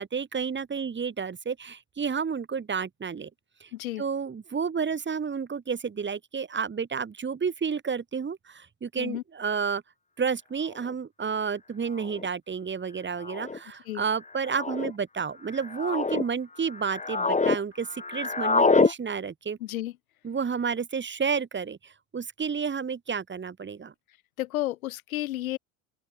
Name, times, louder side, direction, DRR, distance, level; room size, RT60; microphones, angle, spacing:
voice 1, 0.0-3.3 3.6-3.7 4.0-9.8 10.2-19.6 20.2-23.9, right 6 dB, 25° right, 5.6 m, -31 dB
voice 2, 3.7-4.0 9.0-9.2 13.9-14.0 19.6-19.9 24.4-25.6, left 15 dB, 70° left, 7.6 m, -32 dB
sound 1, 10.9-11.0 12.0-12.3 13.2-13.6 14.4-14.9 15.5-16.2 16.7-17.6 17.8-18.9, left 4 dB, 15° left, 6.8 m, -25 dB
open air
figure-of-eight pair, 70°, 43 cm